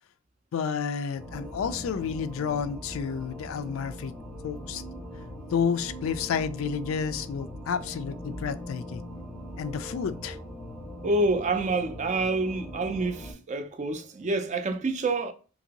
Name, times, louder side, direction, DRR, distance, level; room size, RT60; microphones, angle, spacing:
voice 1, 0.5-4.1 4.4-4.8 5.5-9.1 9.6-10.4, left 6 dB, 85° left, 0.3 m, -30 dB
sound 1, 1.2-13.3, equal, ahead, 0.7 m, -41 dB
voice 2, 11.0-15.3, right 2 dB, 35° right, 0.4 m, -27 dB
2.9 x 2.6 x 2.8 m
head